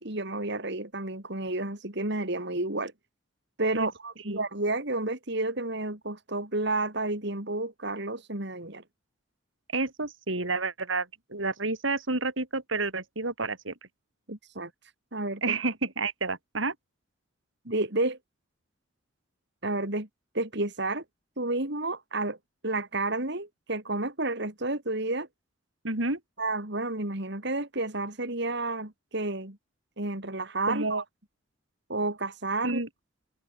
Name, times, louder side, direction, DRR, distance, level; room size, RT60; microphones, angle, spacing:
voice 1, 0.0-2.9 3.6-8.8 14.3-14.7 15.1-15.6 17.7-18.2 19.6-20.1 20.3-21.0 21.4-22.4 22.6-25.3 26.4-29.6 30.0-31.0 31.9-32.8, right 2 dB, 60° right, 3.8 m, -31 dB
voice 2, 9.7-13.7 15.4-16.7 25.8-26.2 30.7-31.0 32.6-32.9, right 3 dB, 75° right, 4.3 m, -30 dB
head